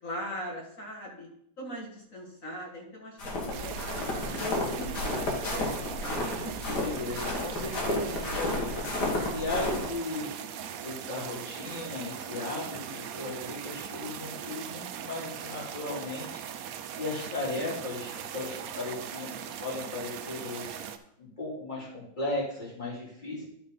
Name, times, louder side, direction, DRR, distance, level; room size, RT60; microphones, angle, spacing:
voice 1, 0.0-1.3 1.6-3.3 3.6-3.8 4.0-6.4 6.6-6.7, equal, 45° left, -1 dB, 2.3 m, -40 dB
sound 1, 3.2-9.9, left 2 dB, 60° left, 2.1 m, -32 dB
sound 2, 3.5-21.0, right 9 dB, 70° right, 0.8 m, -40 dB
voice 2, 6.7-10.3 10.8-16.3 16.9-20.8 21.2-23.5, left 2 dB, 25° left, -4 dB, 2.8 m, -36 dB
11.5 x 4.0 x 5.2 m, 0.73 s
omnidirectional pair, 2.1 m